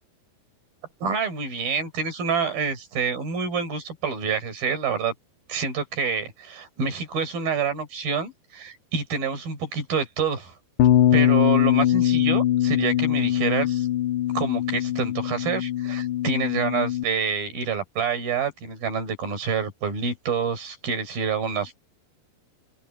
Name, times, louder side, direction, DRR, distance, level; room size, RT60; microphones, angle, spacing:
voice 1, 1.0-5.1 5.5-10.5 11.1-13.9 14.3-21.8, right 5 dB, 55° right, 6.5 m, -27 dB
Bass guitar, 10.8-17.0, left 11 dB, 80° left, 3.3 m, -22 dB
open air
omnidirectional pair, 5.0 m